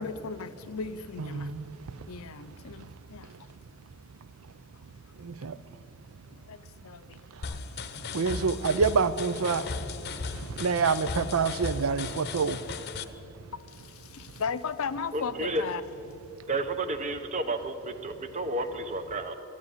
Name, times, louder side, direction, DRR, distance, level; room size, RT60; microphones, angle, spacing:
voice 1, 0.0-1.5 2.1-3.3 6.4-7.2 8.1-8.2 13.7-15.8, left 5 dB, 80° left, 0.5 m, -36 dB
voice 2, 1.2-1.6 5.2-5.5 8.1-9.7 10.6-12.6, right 5 dB, 75° right, 0.5 m, -26 dB
sound 1, 7.4-13.0, left 4 dB, 50° left, 0.7 m, -36 dB
voice 3, 15.1-15.6 16.5-19.3, right 2 dB, 35° right, 0.9 m, -31 dB
13.5 x 9.8 x 9.7 m
head